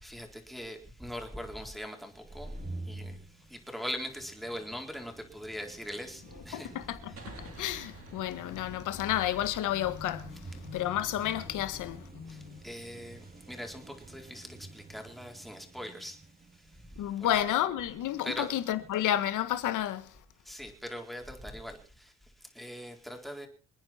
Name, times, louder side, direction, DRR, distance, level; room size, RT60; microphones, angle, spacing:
voice 1, 0.0-2.5 2.9-3.2 3.7-6.7 12.6-13.2 13.5-16.2 17.2-17.3 18.2-18.5 20.5-21.8 22.6-23.5, equal, ahead, 4.2 m, -41 dB
sound 1, 2.1-19.5, right 2 dB, 30° right, 3.1 m, -49 dB
sound 2, 6.0-12.8, left 6 dB, 65° left, 3.2 m, -51 dB
voice 2, 6.5-12.1 17.0-20.2, left 12 dB, 85° left, 1.7 m, -31 dB
sound 3, 7.2-10.6, right 4 dB, 50° right, 3.7 m, -52 dB
27.5 x 9.5 x 4.5 m
cardioid pair, 90°, 30 cm